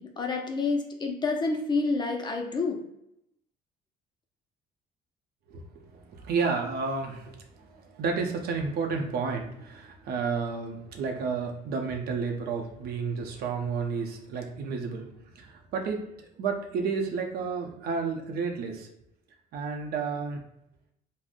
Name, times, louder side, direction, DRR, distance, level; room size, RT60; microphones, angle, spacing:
voice 1, 0.0-2.8, left 3 dB, 25° left, 3 dB, 0.4 m, -28 dB
voice 2, 5.5-15.1 15.3-18.9 19.5-20.4, right 5 dB, 65° right, 3 dB, 0.6 m, -31 dB
3.5 x 2.0 x 2.4 m, 0.81 s
cardioid pair, 110°, 17 cm